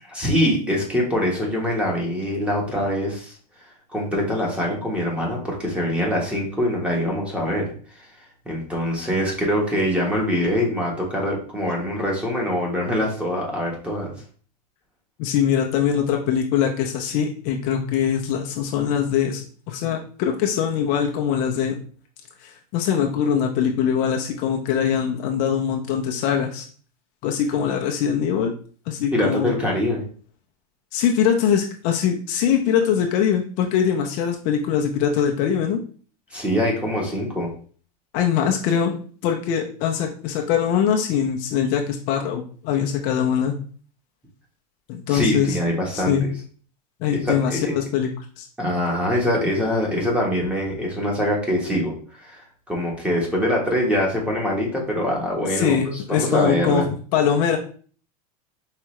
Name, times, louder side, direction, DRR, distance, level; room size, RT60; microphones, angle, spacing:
voice 1, 0.1-3.3 3.9-8.1 8.4-14.1 29.1-30.0 36.3-37.5 45.1-46.3 47.1-47.7 48.6-55.8 56.1-56.9, equal, 5° right, -2 dB, 1.2 m, -24 dB
voice 2, 15.2-19.4 19.7-21.8 22.4-26.7 27.2-28.5 28.9-29.5 30.9-35.8 38.1-39.0 39.2-43.6 44.9-45.6 45.9-46.3 47.0-48.1 48.4-48.5 55.5-56.8 57.1-57.6, left 8 dB, 45° left, 2 dB, 0.7 m, -22 dB
4.8 x 3.3 x 3.1 m, 0.43 s
supercardioid pair, 145°, 20 cm